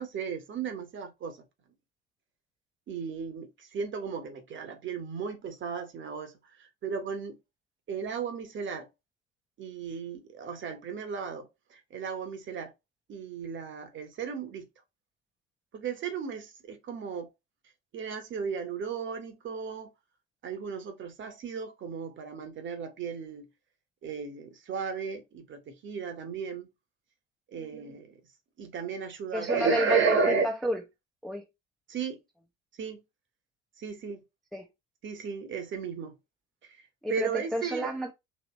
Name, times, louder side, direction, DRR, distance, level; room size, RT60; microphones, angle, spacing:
voice 1, 0.0-1.4 2.9-7.4 7.9-8.9 9.6-12.7 13.1-14.7 15.7-17.3 17.9-19.9 20.4-23.5 24.0-26.7 27.5-28.2 28.6-30.4 31.9-32.2 32.8-33.0 33.8-34.2 35.0-36.2 36.6-36.8 37.1-37.9, right 5 dB, 35° right, 1.0 m, -34 dB
voice 2, 29.3-30.8 31.2-31.4 34.5-34.7 37.0-38.1, equal, ahead, 0.6 m, -31 dB
3.0 x 2.9 x 3.0 m
figure-of-eight pair, 70°, 35 cm